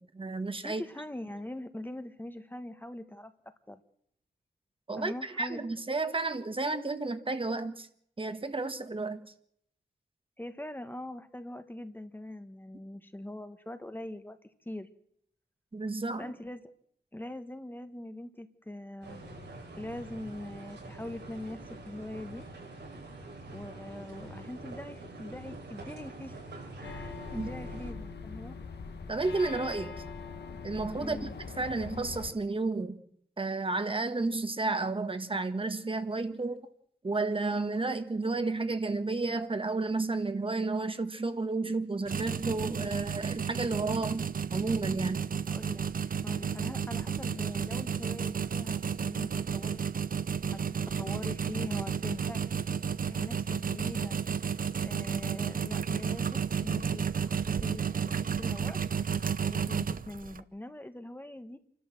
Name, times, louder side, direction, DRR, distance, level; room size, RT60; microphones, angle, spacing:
voice 1, 0.0-0.8 4.9-7.9 8.2-9.3 15.7-16.3 27.3-27.5 29.1-29.9 30.6-31.3 31.6-33.0 33.4-36.6 37.0-44.3 44.5-45.3, right 3 dB, 30° right, 9 dB, 1.6 m, -32 dB
voice 2, 0.6-3.3 3.7-3.8 5.0-5.6 10.4-14.4 14.6-14.9 16.2-16.7 17.1-19.2 19.8-22.4 23.5-26.4 26.8-28.6 31.0-31.3 45.5-49.8 50.5-50.6 51.0-52.4 53.1-54.2 54.8-58.8 59.4-61.6, left 1 dB, 10° left, 9 dB, 1.3 m, -42 dB
sound 1, 19.0-27.9, right 2 dB, 90° right, 6.8 m, -45 dB
sound 2, 26.8-32.3, left 4 dB, 90° left, 2.4 m, -42 dB
sound 3, 42.1-60.4, right 6 dB, 55° right, 0.8 m, -32 dB
28.0 x 12.5 x 7.7 m, 0.72 s
wide cardioid pair, 100°, 17 cm